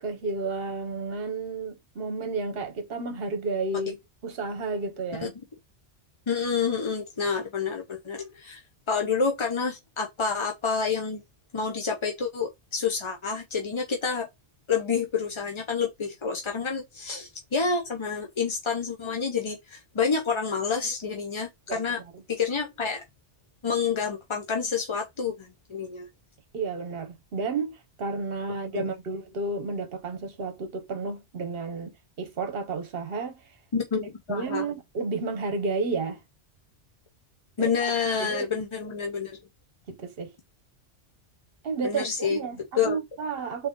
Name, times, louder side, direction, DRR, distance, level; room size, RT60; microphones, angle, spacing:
voice 1, 0.0-4.0 4.2-5.3 21.7-21.8 22.1-22.2 26.5-33.4 34.3-36.2 37.6-37.7 38.2-38.5 39.9-40.3 41.6-43.7, right 4 dB, 55° right, 1.1 m, -31 dB
voice 2, 6.3-8.6 8.9-11.2 11.5-14.3 14.7-22.0 22.3-23.0 23.6-26.1 28.7-28.9 33.7-34.7 37.6-39.4 41.8-42.4 42.8-43.0, left 5 dB, 35° left, 0.5 m, -28 dB
3.8 x 3.2 x 3.6 m
omnidirectional pair, 1.2 m